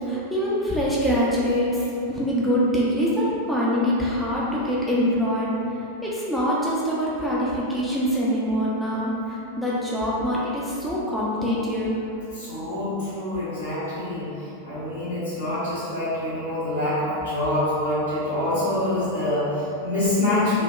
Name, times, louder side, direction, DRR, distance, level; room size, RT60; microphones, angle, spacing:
voice 1, 0.1-1.8 2.1-5.5 6.0-12.0, equal, ahead, -8 dB, 0.3 m, -24 dB
voice 2, 12.3-20.6, left 1 dB, 70° left, -14 dB, 1.4 m, -26 dB
2.8 x 2.0 x 2.2 m, 2.8 s
figure-of-eight pair, 90°, 0 cm